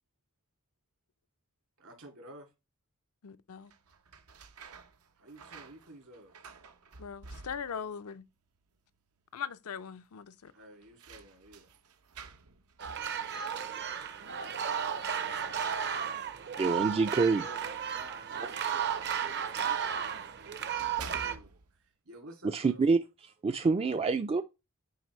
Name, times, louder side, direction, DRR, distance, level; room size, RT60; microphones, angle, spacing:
voice 1, 1.8-2.5 5.2-6.3 10.5-11.7 17.3-22.9, right 1 dB, 70° right, 2.3 m, -52 dB
voice 2, 3.2-3.7 7.0-8.2 9.3-10.5, left 7 dB, 80° left, 0.5 m, -40 dB
sound 1, 3.6-8.0 8.3-9.0 9.3-9.4 10.4-15.9 16.7-20.2 20.6-21.8, right 4 dB, 85° right, 0.8 m, -52 dB
sound 2, 12.8-21.4, right 8 dB, 50° right, 0.7 m, -34 dB
voice 3, 16.6-17.4 22.4-23.0 23.4-24.4, right 4 dB, 25° right, 0.3 m, -26 dB
9.3 x 4.8 x 3.0 m
head